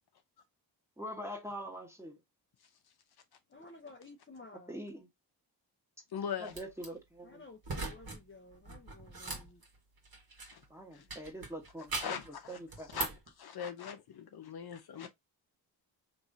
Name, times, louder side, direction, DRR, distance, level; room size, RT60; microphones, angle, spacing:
voice 1, 1.0-2.2 4.7-5.1 6.4-7.4 10.7-12.2 12.5-13.0, equal, 5° right, 1.4 m, -44 dB
voice 2, 3.5-4.7 7.2-9.6, left 3 dB, 30° left, 0.8 m, -53 dB
voice 3, 6.1-6.5 10.5-10.6 10.9-11.0 12.0-13.1 13.4-15.1, left 8 dB, 65° left, 0.8 m, -40 dB
sound 1, 6.5-6.9 7.6-8.2 8.5-10.7 11.1-12.3 12.7-13.3, right 3 dB, 55° right, 1.7 m, -40 dB
3.5 x 3.1 x 2.7 m
cardioid pair, 60°, 42 cm